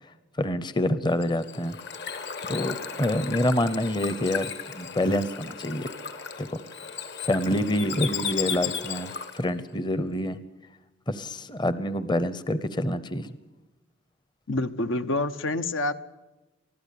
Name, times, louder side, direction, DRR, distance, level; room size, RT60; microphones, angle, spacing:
voice 1, 0.4-1.7 2.5-5.9 6.4-6.6 7.3-10.4 11.1-13.3, left 1 dB, 20° left, 14 dB, 0.8 m, -27 dB
Bird / Water, 1.1-9.5, left 7 dB, 55° left, 1.9 m, -35 dB
voice 2, 14.5-15.9, left 2 dB, 75° left, 10 dB, 1.1 m, -27 dB
24.5 x 15.0 x 8.5 m, 1.1 s
head